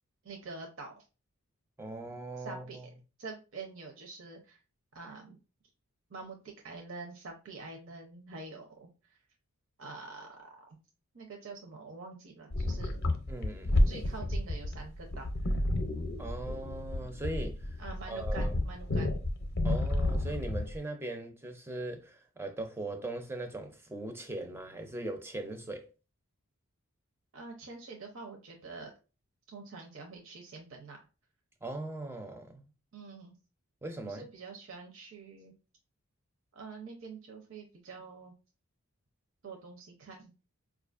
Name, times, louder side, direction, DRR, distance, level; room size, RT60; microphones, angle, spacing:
voice 1, 0.2-1.0 2.4-2.9 3.2-4.6 4.9-5.4 6.1-9.2 9.8-10.8 11.1-13.0 13.9-15.6 17.8-19.2 27.3-28.9 29.5-31.0 32.9-33.4 34.0-35.5 36.5-38.3 39.4-40.3, right 3 dB, 60° right, 0.6 m, -46 dB
voice 2, 1.8-2.9 13.3-13.9 16.2-17.8 18.1-18.6 19.6-25.9 31.6-32.6 33.8-34.3, right 2 dB, 10° right, 0.4 m, -40 dB
sound 1, 12.5-20.8, left 1 dB, 45° left, 0.5 m, -31 dB
4.7 x 2.4 x 2.4 m
head